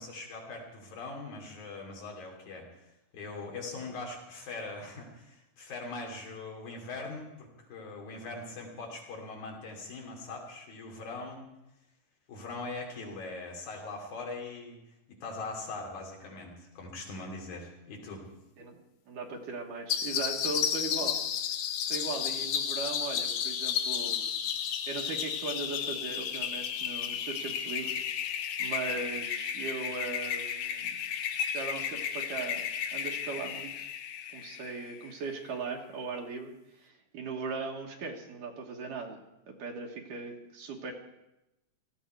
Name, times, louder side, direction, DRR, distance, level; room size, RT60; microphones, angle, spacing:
voice 1, 0.0-11.5 12.3-14.8 15.2-18.3, left 3 dB, 65° left, 0 dB, 4.3 m, -41 dB
voice 2, 18.6-21.2 21.8-24.3 24.9-31.0 31.5-32.6 32.9-33.9 34.3-39.2 39.5-40.9, right 4 dB, 80° right, 0 dB, 3.1 m, -39 dB
sound 1, 19.9-35.1, left 8 dB, 80° left, 2.5 m, -33 dB
18.0 x 14.5 x 4.6 m, 0.93 s
omnidirectional pair, 3.7 m